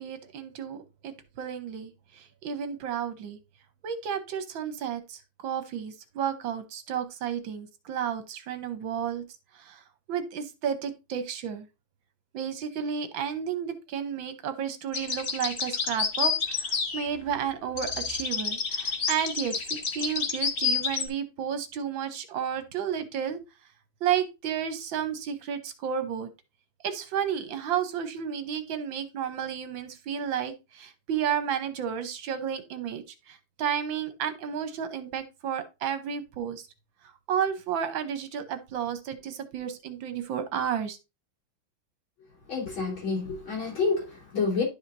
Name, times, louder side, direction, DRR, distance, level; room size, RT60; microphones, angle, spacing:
voice 1, 0.0-3.4 3.8-9.2 9.6-9.8 10.1-11.7 12.3-23.4 24.0-26.3 26.8-36.6 37.0-41.0, right 8 dB, 75° right, 1.7 m, -32 dB
sound 1, 14.9-17.4 17.7-21.0, left 5 dB, 40° left, 1.0 m, -29 dB
voice 2, 42.5-44.6, left 4 dB, 75° left, 4.7 m, -28 dB
11.5 x 5.0 x 2.6 m
omnidirectional pair, 2.2 m